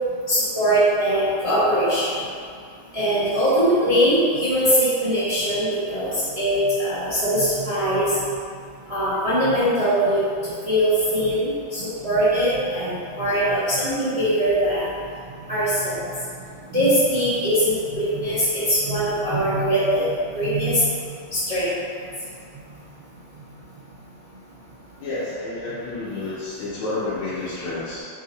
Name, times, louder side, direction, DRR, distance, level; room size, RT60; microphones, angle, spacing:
voice 1, 0.3-2.1 2.9-8.2 8.9-14.9 15.5-16.0 16.7-21.7, equal, 65° right, -14 dB, 0.3 m, -21 dB
voice 2, 25.0-28.0, left 2 dB, 90° left, -11 dB, 1.7 m, -30 dB
3.8 x 2.8 x 3.9 m, 2.3 s
omnidirectional pair, 2.3 m